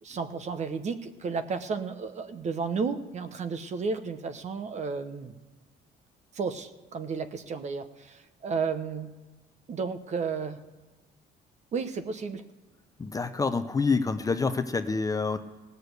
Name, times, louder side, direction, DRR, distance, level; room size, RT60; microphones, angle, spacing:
voice 1, 0.0-5.3 6.3-9.1 9.7-10.6 11.7-12.4, right 5 dB, 45° right, 10 dB, 1.0 m, -32 dB
voice 2, 13.0-15.4, left 4 dB, 20° left, 9 dB, 0.7 m, -27 dB
17.5 x 6.7 x 8.1 m, 1.3 s
cardioid pair, 110°, 17 cm